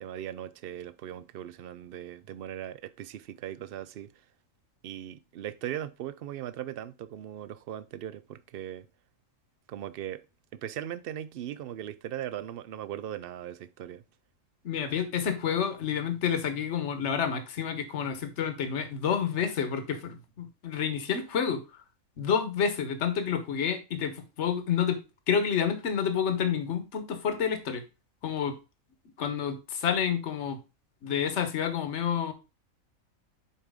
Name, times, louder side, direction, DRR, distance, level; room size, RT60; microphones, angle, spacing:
voice 1, 0.0-4.1 4.8-8.9 9.7-10.2 10.5-14.0, right 11 dB, 65° right, 0.6 m, -39 dB
voice 2, 14.6-21.6 22.2-25.0 25.3-27.8 28.2-28.5 29.2-30.6 31.0-32.3, left 7 dB, 60° left, 1.3 m, -29 dB
7.3 x 4.8 x 3.6 m
omnidirectional pair, 1.4 m